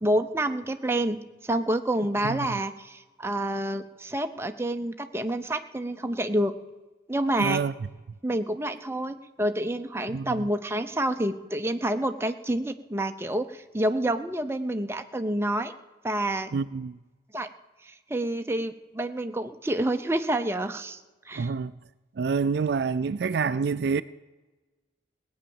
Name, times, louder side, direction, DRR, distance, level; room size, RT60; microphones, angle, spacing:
voice 1, 0.0-6.5 7.1-7.6 8.2-15.7 16.0-16.5 17.3-17.5 17.8-21.0 21.3-21.5, right 1 dB, 15° right, 0.6 m, -28 dB
voice 2, 2.2-2.6 7.4-7.7 10.1-10.5 16.5-17.0 21.4-21.7 22.2-24.0, right 5 dB, 55° right, 0.3 m, -27 dB
17.5 x 8.8 x 7.1 m
head